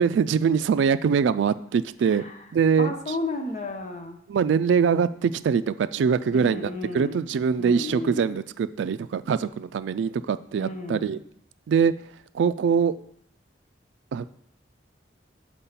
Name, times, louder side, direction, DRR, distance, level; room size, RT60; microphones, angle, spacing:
voice 1, 0.0-2.2 2.5-2.9 4.3-11.2 11.7-11.9 12.3-12.9 14.1-14.3, right 6 dB, 80° right, 15 dB, 0.3 m, -23 dB
voice 2, 2.0-2.5 2.8-4.2 6.3-7.2 7.6-8.4 10.6-11.2, left 3 dB, 40° left, 4 dB, 1.0 m, -33 dB
6.8 x 4.6 x 5.7 m, 0.69 s
head